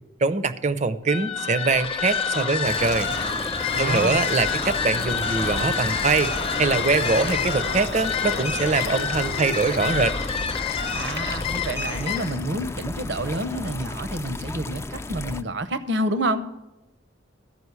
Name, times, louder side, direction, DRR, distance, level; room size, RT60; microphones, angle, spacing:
voice 1, 0.2-3.1 3.8-6.3 6.6-10.2, right 4 dB, 40° right, 13 dB, 0.5 m, -23 dB
sound 1, 1.0-12.5, left 6 dB, 30° left, 0.7 m, -28 dB
sound 2, 2.6-15.4, left 2 dB, 15° left, 0.3 m, -34 dB
voice 2, 3.7-4.3 10.9-16.4, right 1 dB, 70° right, 11 dB, 0.8 m, -28 dB
Crowd, 6.2-11.3, left 3 dB, 75° left, 0.7 m, -37 dB
13.5 x 5.2 x 8.1 m, 0.99 s
head